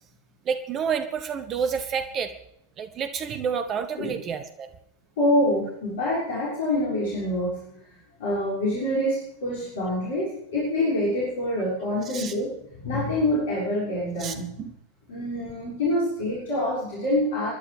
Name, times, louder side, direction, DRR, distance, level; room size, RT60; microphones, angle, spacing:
voice 1, 0.4-2.3 2.8-4.7 12.0-12.3 14.2-14.7, right 6 dB, 30° right, 9 dB, 1.0 m, -29 dB
voice 2, 5.2-7.9 8.2-14.5 15.1-17.5, left 1 dB, 55° left, -7 dB, 6.4 m, -26 dB
30.0 x 11.0 x 3.5 m, 0.79 s
figure-of-eight pair, 90°, 0 cm